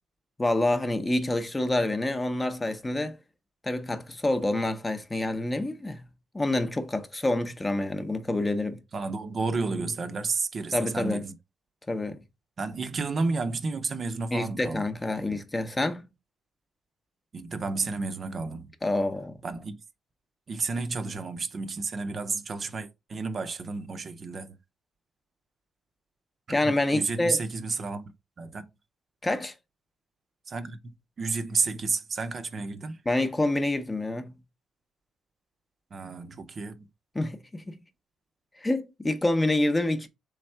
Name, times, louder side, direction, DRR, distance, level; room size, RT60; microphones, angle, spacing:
voice 1, 0.4-3.2 3.6-6.0 6.3-8.8 10.7-11.2 11.9-12.2 14.3-16.0 18.8-19.4 26.5-27.4 29.2-29.5 33.1-34.3 37.1-37.8 38.6-40.1, left 2 dB, 20° left, 0.7 m, -27 dB
voice 2, 8.9-11.3 12.6-14.8 15.3-15.4 17.3-18.7 19.4-19.8 20.5-24.6 26.6-28.1 28.4-28.7 30.5-33.0 35.9-36.8, right 4 dB, 45° right, 0.6 m, -31 dB
3.5 x 3.2 x 4.4 m
cardioid pair, 90°, 0 cm